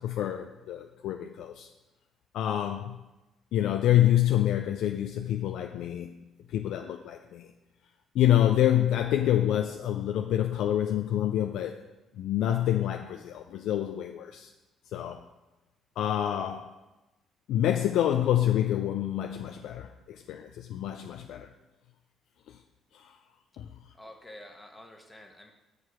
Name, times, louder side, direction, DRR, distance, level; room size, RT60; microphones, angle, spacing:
voice 1, 0.0-1.7 2.3-3.0 3.5-6.2 6.5-7.5 8.1-11.8 12.2-14.5 14.9-15.2 16.0-16.7 17.5-21.5 22.9-23.1 23.6-23.7, left 11 dB, 75° left, 5 dB, 0.4 m, -27 dB
voice 2, 23.9-25.5, left 1 dB, 15° left, 3 dB, 1.1 m, -48 dB
6.6 x 4.8 x 6.1 m, 1.0 s
supercardioid pair, 70°, 0 cm